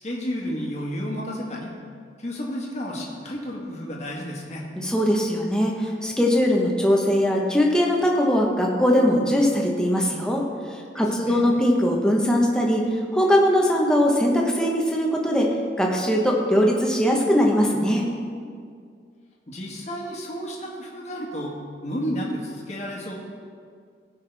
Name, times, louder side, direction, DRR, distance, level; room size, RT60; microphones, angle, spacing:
voice 1, 0.0-1.7 2.2-4.6 11.0-11.5 19.5-21.5 21.8-23.1, equal, 40° left, -2 dB, 1.6 m, -32 dB
voice 2, 4.8-15.5 15.8-18.1, equal, 5° left, -1 dB, 1.1 m, -21 dB
16.5 x 5.7 x 3.4 m, 2.2 s
head